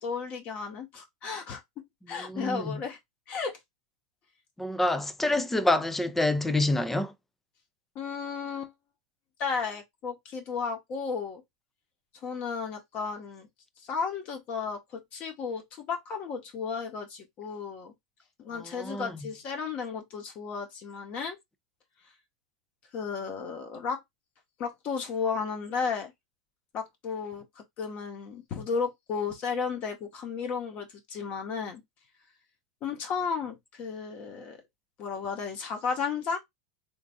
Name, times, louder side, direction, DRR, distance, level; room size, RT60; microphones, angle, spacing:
voice 1, 0.0-1.6 2.1-3.0 3.3-3.6 7.9-8.7 9.4-11.4 12.2-13.5 13.8-17.9 18.4-21.4 22.9-24.0 24.6-26.1 26.7-31.8 32.8-34.6 35.0-36.4, left 5 dB, 40° left, 1.6 m, -34 dB
voice 2, 2.1-2.8 4.6-7.1 18.6-19.2, left 1 dB, 5° left, 0.5 m, -27 dB
3.8 x 3.5 x 2.6 m
supercardioid pair, 130°, 4 cm